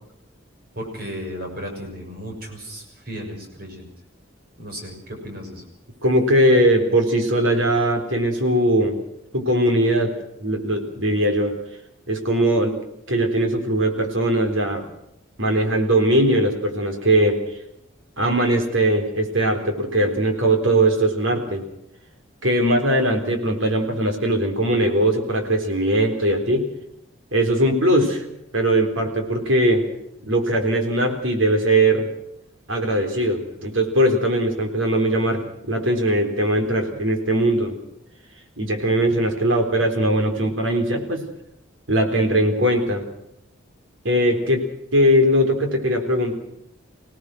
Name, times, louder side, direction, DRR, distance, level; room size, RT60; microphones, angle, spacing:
voice 1, 0.7-3.9 4.6-5.7, equal, 50° right, 2 dB, 6.4 m, -34 dB
voice 2, 6.0-9.0 9.3-10.1 10.4-11.5 12.1-12.8 13.1-14.8 15.4-17.4 18.2-21.6 22.4-26.7 27.3-28.2 28.5-29.9 30.2-32.1 32.7-37.8 38.6-41.3 41.9-43.0 44.0-44.6 44.9-46.3, right 1 dB, 80° right, 4 dB, 3.9 m, -20 dB
26.0 x 18.0 x 6.4 m, 0.82 s
head